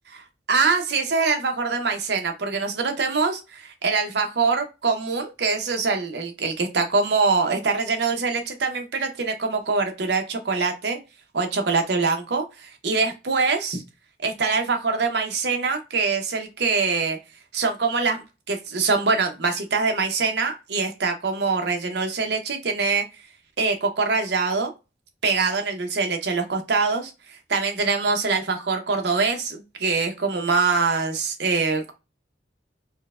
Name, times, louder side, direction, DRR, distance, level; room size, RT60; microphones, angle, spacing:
voice 1, 0.5-11.0 11.3-13.8 14.2-17.2 17.5-23.0 23.6-24.7 25.2-27.1 27.5-31.9, right 4 dB, 60° right, 4 dB, 0.7 m, -24 dB
4.4 x 2.0 x 2.3 m, 0.27 s
head